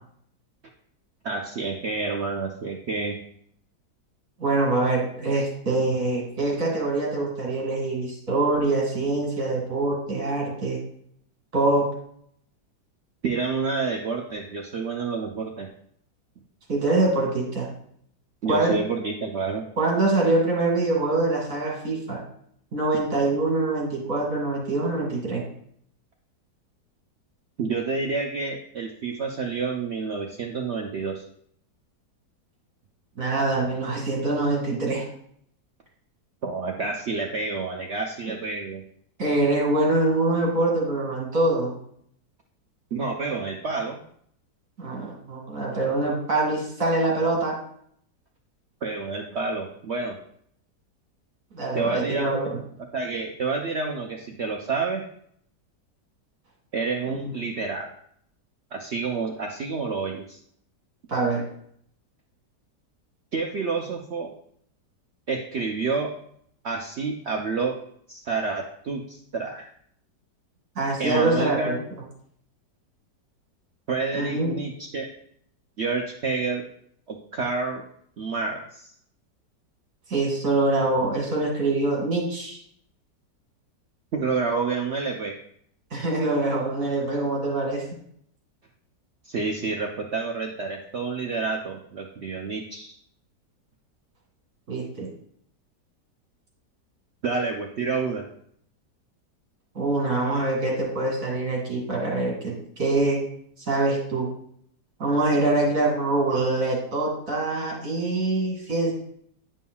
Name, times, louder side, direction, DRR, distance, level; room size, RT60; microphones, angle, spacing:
voice 1, 1.2-3.2 13.2-15.7 18.4-19.6 27.6-31.2 36.4-38.8 42.9-44.0 48.8-50.2 51.7-52.5 52.9-55.0 56.7-57.9 58.7-60.4 63.3-64.3 65.3-66.1 66.6-67.8 68.1-69.7 71.0-71.8 73.9-75.1 75.8-76.6 77.1-77.8 78.2-78.9 84.1-85.4 89.2-93.0 97.2-98.2, right 4 dB, 75° right, 2 dB, 0.6 m, -29 dB
voice 2, 4.4-10.8 11.5-11.8 16.7-17.7 18.5-18.8 19.8-22.2 22.7-25.4 33.2-35.1 39.2-41.7 44.8-47.5 51.5-52.4 57.1-57.3 61.1-61.4 70.8-71.8 74.1-74.5 80.1-82.6 85.9-87.8 94.7-95.1 99.7-103.2 103.7-104.3 105.0-108.9, right 2 dB, 50° right, -3 dB, 2.4 m, -24 dB
10.0 x 5.5 x 2.3 m, 0.67 s
omnidirectional pair, 1.9 m